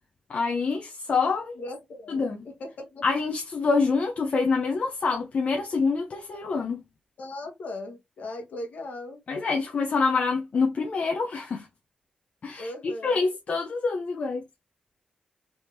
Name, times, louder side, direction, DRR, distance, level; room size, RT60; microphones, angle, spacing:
voice 1, 0.3-1.5 2.1-2.5 3.0-6.8 9.3-11.7 12.4-14.4, left 4 dB, 50° left, 0.6 m, -26 dB
voice 2, 1.5-3.0 7.2-9.2 12.6-13.4, left 1 dB, 70° left, 1.2 m, -38 dB
3.5 x 2.9 x 2.6 m
wide cardioid pair, 110°, 3 cm